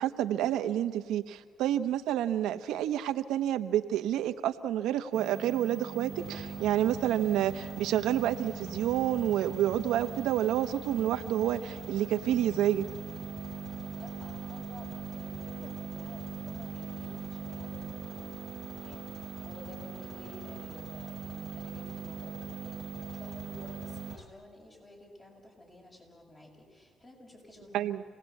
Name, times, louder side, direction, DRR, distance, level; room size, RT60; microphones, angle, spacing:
voice 1, 0.0-12.8 27.7-28.0, right 11 dB, 90° right, 8 dB, 1.0 m, -29 dB
sound 1, 5.1-24.2, right 6 dB, 50° right, 0.8 m, -41 dB
sound 2, 6.1-24.3, left 3 dB, 60° left, 5.8 m, -49 dB
voice 2, 14.0-18.6 18.8-22.8 23.1-27.9, left 1 dB, 25° left, 0 dB, 7.0 m, -52 dB
28.0 x 18.5 x 8.4 m, 1.5 s
cardioid pair, 90°, 0 cm